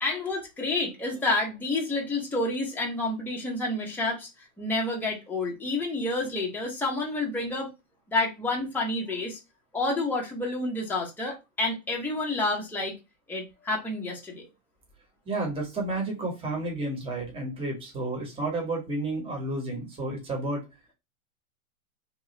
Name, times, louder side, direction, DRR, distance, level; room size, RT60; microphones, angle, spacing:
voice 1, 0.0-4.3 4.6-7.7 8.1-9.4 9.7-12.9 13.3-14.5, left 2 dB, 5° left, -2 dB, 0.8 m, -29 dB
voice 2, 15.3-20.6, right 2 dB, 15° right, -1 dB, 1.2 m, -31 dB
3.0 x 2.3 x 3.2 m, 0.24 s
hypercardioid pair, 120°, 41 cm